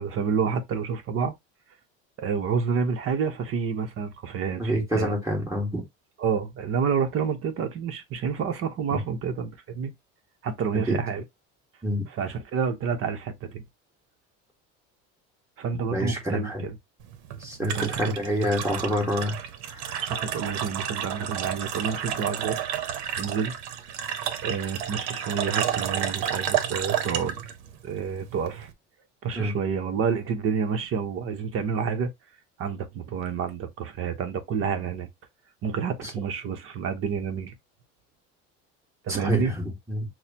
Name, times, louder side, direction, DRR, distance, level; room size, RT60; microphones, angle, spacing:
voice 1, 0.0-1.4 2.2-5.1 6.2-9.9 10.4-11.2 12.1-13.6 15.6-16.8 17.6-17.9 20.0-22.6 23.2-23.5 24.4-27.4 27.8-28.7 29.2-32.1 32.6-35.1 35.6-37.5 39.0-39.5, right 6 dB, 45° right, 0.9 m, -29 dB
voice 2, 4.6-5.8 8.9-9.0 10.9-11.0 11.8-12.0 15.9-16.7 17.4-19.4 19.7-19.9 29.4-29.6 36.0-36.1 39.1-40.1, equal, 10° right, 1.9 m, -27 dB
sound 1, 17.0-28.7, right 9 dB, 90° right, 0.9 m, -31 dB
6.3 x 2.2 x 2.9 m
cardioid pair, 145°, 32 cm